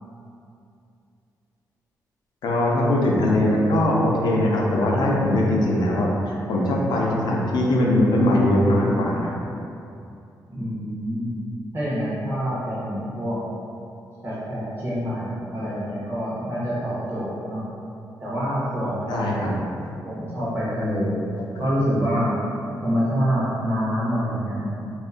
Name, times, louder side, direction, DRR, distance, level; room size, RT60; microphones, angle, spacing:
voice 1, 2.4-9.3 19.1-19.5, left 1 dB, 80° left, -3 dB, 0.4 m, -21 dB
voice 2, 10.5-11.4 11.7-13.4 14.2-17.6 18.2-19.5 20.0-21.2 21.6-22.4 22.8-24.7, equal, 35° right, -9 dB, 0.8 m, -26 dB
2.7 x 2.4 x 2.4 m, 2.6 s
wide cardioid pair, 165°, 7 cm